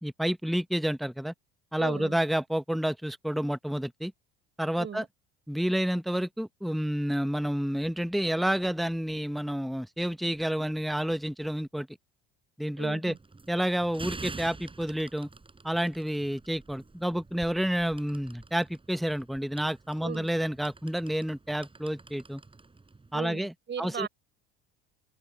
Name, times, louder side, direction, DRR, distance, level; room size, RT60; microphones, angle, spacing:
voice 1, 0.0-1.3 1.7-4.1 4.6-5.0 5.5-11.9 12.6-13.1 13.5-15.3 15.6-22.4 23.1-23.5 23.8-24.1, equal, ahead, 1.1 m, -29 dB
voice 2, 1.8-2.2 4.8-5.1 12.8-13.2 20.0-20.3 23.1-24.1, right 7 dB, 35° right, 5.0 m, -37 dB
sound 1, 13.1-23.1, right 3 dB, 15° right, 6.4 m, -47 dB
hypercardioid pair, 80°, 32 cm